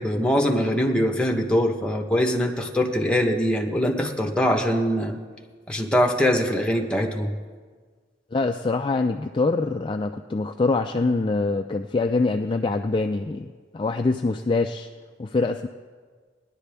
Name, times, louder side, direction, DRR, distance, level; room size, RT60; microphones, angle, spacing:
voice 1, 0.0-5.2 5.7-7.3, equal, 5° left, 1 dB, 0.9 m, -22 dB
voice 2, 8.3-14.9 15.2-15.7, left 3 dB, 25° left, 5 dB, 0.3 m, -24 dB
18.5 x 10.5 x 3.4 m, 1.5 s
head